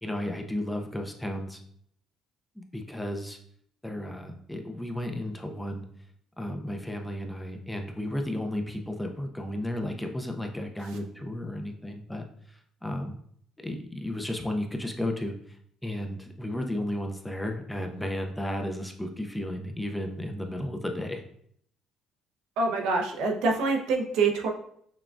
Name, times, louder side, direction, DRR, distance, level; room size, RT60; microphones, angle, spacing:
voice 1, 0.0-1.6 2.6-3.4 3.8-5.9 6.4-13.2 13.6-15.3 15.8-21.2, left 1 dB, 5° left, 4 dB, 0.4 m, -33 dB
voice 2, 22.6-24.5, right 3 dB, 85° right, 2 dB, 0.7 m, -25 dB
5.8 x 2.3 x 2.4 m, 0.66 s
cardioid pair, 115°, 0 cm